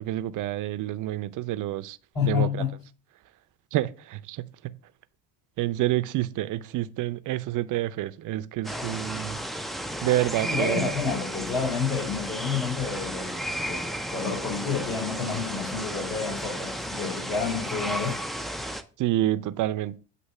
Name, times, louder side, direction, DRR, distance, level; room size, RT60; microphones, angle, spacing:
voice 1, 0.0-2.0 2.2-2.5 3.7-4.7 5.6-9.4 10.0-10.8 19.0-20.0, right 14 dB, 45° right, 0.6 m, -28 dB
voice 2, 2.1-2.7 10.4-18.2, left 6 dB, 50° left, 3.6 m, -29 dB
sound 1, 8.6-18.8, equal, ahead, 0.3 m, -33 dB
8.2 x 2.8 x 5.4 m
hypercardioid pair, 75°, 43 cm